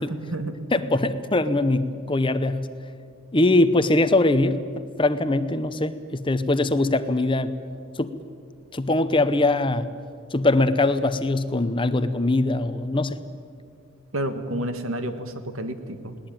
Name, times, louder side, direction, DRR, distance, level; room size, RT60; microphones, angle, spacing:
voice 1, 0.0-0.6 14.1-16.2, right 1 dB, 80° right, 9 dB, 1.7 m, -30 dB
voice 2, 0.7-2.7 3.3-4.6 5.0-7.5 8.0-8.1 8.7-9.9 10.3-13.2, left 2 dB, 25° left, 12 dB, 0.8 m, -22 dB
20.5 x 18.5 x 9.0 m, 2.2 s
head